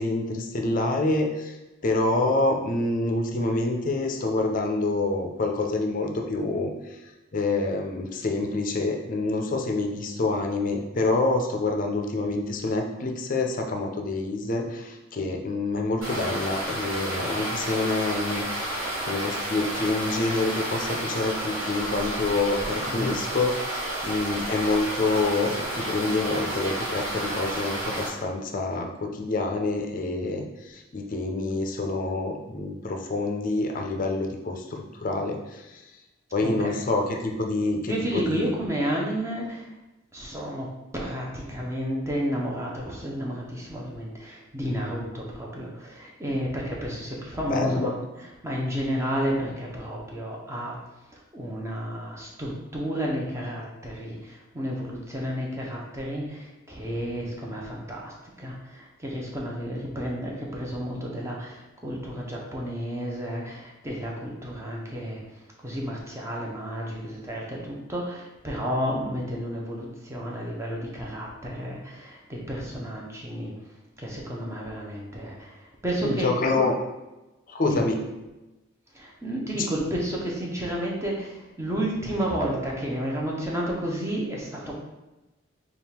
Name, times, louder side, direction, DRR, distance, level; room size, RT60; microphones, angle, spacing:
voice 1, 0.0-1.6 1.8-7.0 7.3-35.9 36.3-38.4 47.5-47.9 76.0-76.8 77.5-78.0 79.5-79.7, left 2 dB, 40° left, 2 dB, 0.5 m, -27 dB
sound 1, 16.0-28.1, right 1 dB, 80° right, 1.3 m, -31 dB
voice 2, 22.8-23.2 36.4-36.7 37.8-39.7 40.1-50.8 51.1-76.3 77.6-77.9 78.9-84.8, equal, 15° right, -3 dB, 0.7 m, -31 dB
3.5 x 2.4 x 4.3 m, 1.0 s
head